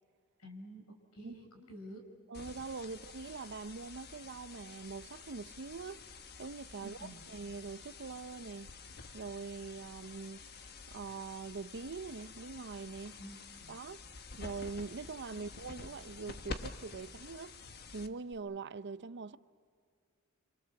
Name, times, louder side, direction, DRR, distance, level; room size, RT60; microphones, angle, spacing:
voice 1, 0.4-2.0 6.8-7.3 13.2-13.7, right 1 dB, 90° left, 5.2 m, -50 dB
sound 1, 2.3-18.3, left 4 dB, 50° left, 1.2 m, -49 dB
voice 2, 2.3-6.0 6.4-7.0 7.3-8.7 9.1-10.4 10.9-13.2 13.7-14.0 14.4-17.6 17.9-19.4, right 4 dB, 55° right, 0.7 m, -43 dB
28.0 x 26.0 x 7.1 m
head